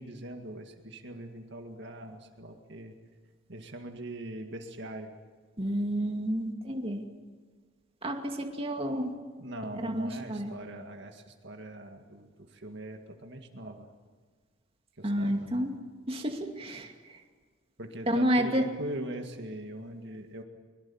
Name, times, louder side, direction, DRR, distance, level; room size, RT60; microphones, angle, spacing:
voice 1, 0.0-3.0 3.5-5.2 9.4-13.9 15.0-15.7 17.8-20.4, right 1 dB, 60° right, 4 dB, 2.1 m, -41 dB
voice 2, 5.6-7.0 8.0-9.1 9.8-10.5 15.0-15.7 16.1-17.2 18.1-18.6, equal, 30° right, 2 dB, 2.3 m, -30 dB
23.5 x 22.5 x 7.3 m, 1.5 s
head